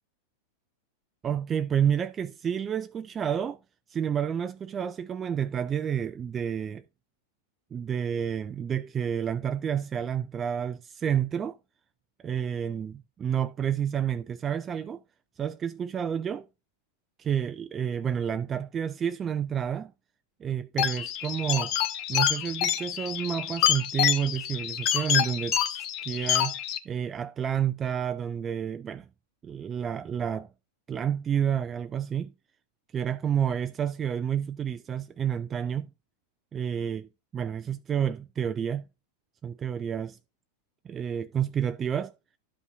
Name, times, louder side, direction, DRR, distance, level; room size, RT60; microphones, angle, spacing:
voice 1, 1.2-3.6 3.9-6.8 7.7-11.6 12.2-15.0 15.4-16.5 17.2-19.9 20.4-21.7 22.1-26.6 26.9-29.1 29.4-30.5 30.9-32.3 32.9-35.9 36.5-38.9 39.4-40.2 40.8-42.1, right 8 dB, 25° right, 0.4 m, -30 dB
sound 1, 20.8-26.8, left 11 dB, 40° left, 0.9 m, -27 dB
12.5 x 5.3 x 2.5 m
figure-of-eight pair, 90°, 0 cm